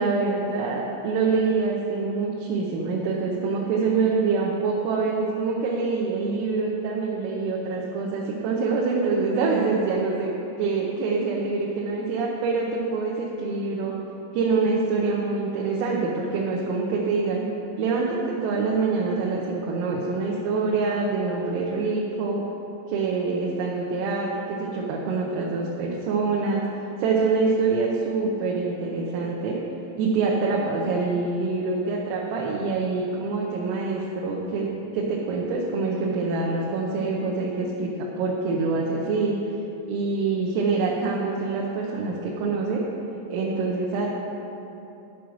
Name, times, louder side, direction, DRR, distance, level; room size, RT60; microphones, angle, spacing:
voice 1, 0.0-10.3 10.6-13.9 14.3-17.4 17.8-22.5 22.9-29.6 30.0-39.4 39.9-42.8 43.3-44.1, right 4 dB, 85° right, -3 dB, 3.6 m, -25 dB
11.0 x 6.3 x 5.9 m, 2.9 s
omnidirectional pair, 5.8 m